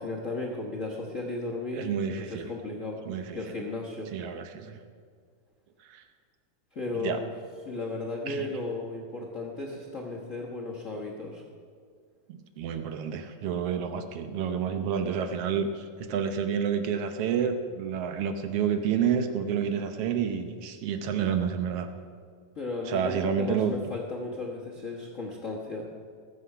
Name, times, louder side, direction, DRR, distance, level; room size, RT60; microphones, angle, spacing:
voice 1, 0.0-3.0 3.3-4.1 6.7-7.3 7.6-11.4 22.5-25.9, left 2 dB, 80° left, -1 dB, 0.7 m, -35 dB
voice 2, 1.7-2.5 3.1-3.4 4.1-4.8 5.8-6.0 7.0-7.2 8.3-8.5 12.3-21.9 22.8-23.7, right 7 dB, 75° right, 8 dB, 1.4 m, -29 dB
20.0 x 7.8 x 5.6 m, 2.1 s
omnidirectional pair, 3.6 m